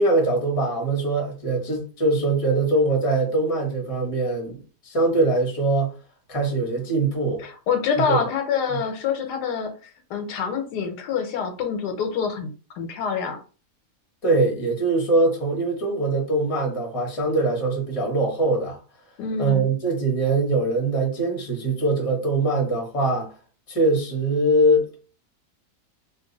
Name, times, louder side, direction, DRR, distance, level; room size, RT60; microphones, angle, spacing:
voice 1, 0.0-5.9 6.3-7.4 8.1-8.2 8.7-8.8 14.2-18.8 19.4-23.3 23.7-24.9, right 2 dB, 25° left, 0.9 m, -22 dB
voice 2, 7.4-9.7 10.1-13.4 19.2-19.7, left 6 dB, 85° left, 1.3 m, -26 dB
2.8 x 2.5 x 3.8 m
omnidirectional pair, 1.7 m